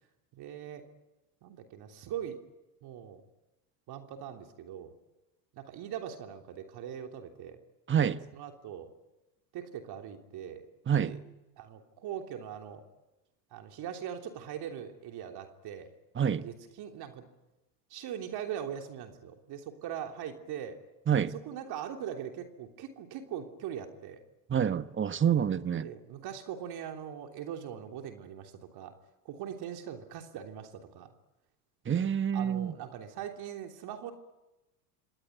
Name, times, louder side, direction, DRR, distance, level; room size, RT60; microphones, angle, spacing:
voice 1, 0.3-0.9 1.4-2.4 2.8-3.2 3.9-4.9 5.5-7.6 8.3-8.9 9.5-10.6 11.0-11.2 11.6-12.8 13.5-15.9 16.4-17.3 17.9-20.8 21.2-24.2 25.8-28.9 29.2-31.1 32.3-34.1, right 9 dB, 55° right, 3.3 m, -41 dB
voice 2, 7.9-8.2 10.9-11.1 16.2-16.4 21.1-21.3 24.5-25.9 31.8-32.7, right 8 dB, 25° right, 1.2 m, -27 dB
26.5 x 19.5 x 9.3 m
hypercardioid pair, 85°, 46 cm